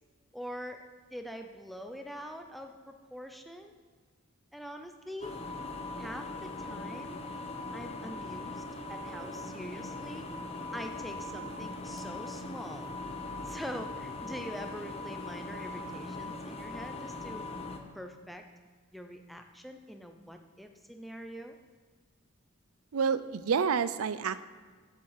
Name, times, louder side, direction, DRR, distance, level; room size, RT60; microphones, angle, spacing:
voice 1, 0.3-0.8 1.1-3.7 4.5-5.4 6.0-7.2 7.7-8.6 8.9-10.3 10.7-13.0 13.4-17.5 17.9-18.4 18.9-21.6, equal, ahead, 4 dB, 0.6 m, -44 dB
sound 1, 5.2-17.8, left 2 dB, 30° left, 0.8 m, -40 dB
voice 2, 22.9-24.4, right 6 dB, 90° right, 14 dB, 0.5 m, -28 dB
7.4 x 7.4 x 7.4 m, 1.5 s
head